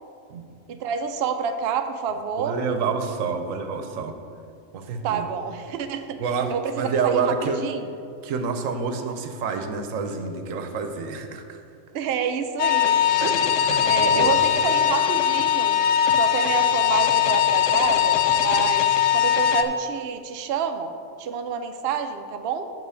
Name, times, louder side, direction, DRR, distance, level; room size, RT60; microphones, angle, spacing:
voice 1, 0.7-2.6 5.0-6.2 6.5-7.2 7.6-7.9 11.9-13.0 13.8-15.8 16.2-20.9 21.2-22.7, right 6 dB, 60° right, 7 dB, 0.7 m, -28 dB
voice 2, 2.4-4.2 4.7-5.3 6.2-7.6 8.2-11.6 13.2-14.4, right 5 dB, 90° right, 6 dB, 1.1 m, -28 dB
sound 1, 12.6-19.6, left 9 dB, 75° left, 0.9 m, -20 dB
7.5 x 5.6 x 6.3 m, 2.4 s
omnidirectional pair, 1.3 m